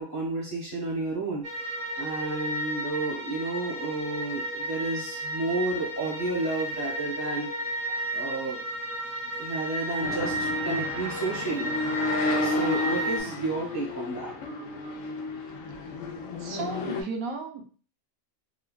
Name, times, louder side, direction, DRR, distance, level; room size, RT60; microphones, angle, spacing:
voice 1, 0.0-1.4 2.0-7.5 8.1-8.6 9.4-11.7 12.4-14.3, right 3 dB, 25° left, -4 dB, 0.5 m, -31 dB
sound 1, 1.4-13.2, right 1 dB, 55° right, 0.6 m, -33 dB
sound 2, 10.0-17.0, left 2 dB, 75° left, 0.9 m, -31 dB
voice 2, 16.4-17.6, right 5 dB, 85° right, 3 dB, 1.0 m, -35 dB
3.2 x 2.4 x 2.2 m, 0.42 s
omnidirectional pair, 1.4 m